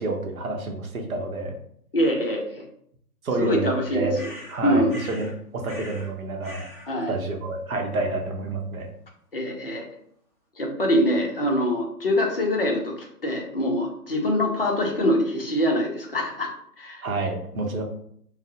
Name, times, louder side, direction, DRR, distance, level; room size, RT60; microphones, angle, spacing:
voice 1, 0.0-1.6 3.2-4.2 4.5-6.7 7.1-8.9 17.0-17.8, right 2 dB, 60° right, 3 dB, 0.7 m, -28 dB
voice 2, 1.9-2.6 3.4-4.3 4.6-4.9 6.9-7.1 9.3-9.9 10.6-16.5 16.8-17.0, equal, 40° left, 1 dB, 0.4 m, -24 dB
sound 1, 4.1-5.3 5.6-6.1 6.4-6.9, left 1 dB, 10° right, 1.3 m, -41 dB
3.3 x 2.0 x 2.8 m, 0.67 s
hypercardioid pair, 160°, 47 cm